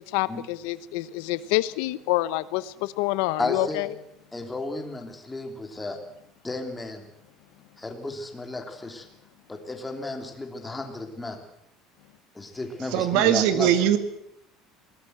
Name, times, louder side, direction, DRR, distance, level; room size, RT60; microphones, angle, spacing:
voice 1, 0.1-3.9, left 17 dB, 80° left, 15 dB, 1.0 m, -27 dB
voice 2, 3.4-3.9 4.3-6.0 6.4-7.0 7.8-9.0 9.5-11.4 12.3-13.7, left 2 dB, 10° left, 4 dB, 3.0 m, -33 dB
voice 3, 12.9-14.0, right 11 dB, 65° right, 10 dB, 1.9 m, -20 dB
22.0 x 18.5 x 8.0 m, 0.78 s
cardioid pair, 160°, 0 cm